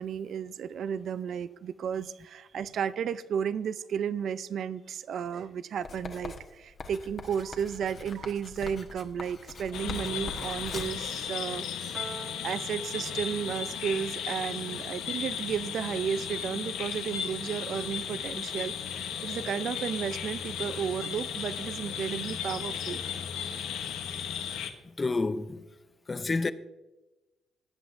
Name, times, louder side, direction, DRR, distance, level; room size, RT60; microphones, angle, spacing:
voice 1, 0.0-23.0, right 8 dB, 60° right, 0.4 m, -33 dB
Writing, 5.8-11.1, left 3 dB, 40° left, 1.2 m, -42 dB
sound 1, 9.7-24.7, left 8 dB, 90° left, 1.0 m, -35 dB
Piano, 11.9-18.5, right 3 dB, 30° right, 1.0 m, -50 dB
voice 2, 24.8-25.6 26.1-26.5, left 3 dB, 25° left, 0.5 m, -29 dB
17.5 x 7.9 x 2.6 m
cardioid pair, 105°, 0 cm